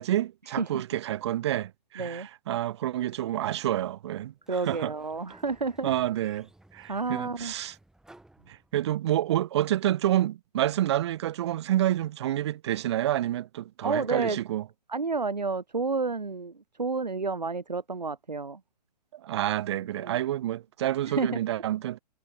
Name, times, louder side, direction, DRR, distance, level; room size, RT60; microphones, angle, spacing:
voice 1, 0.0-4.9 5.8-7.8 8.5-14.7 19.1-22.0, right 13 dB, 40° right, 0.5 m, -28 dB
Sliding door, 4.4-9.1, right 1 dB, 5° right, 3.5 m, -57 dB
voice 2, 4.5-5.9 6.9-7.5 13.8-14.4 14.9-16.5 16.8-18.6 20.0-20.2 21.1-21.4, right 4 dB, 85° right, 0.8 m, -30 dB
figure-of-eight pair, 120°, 21 cm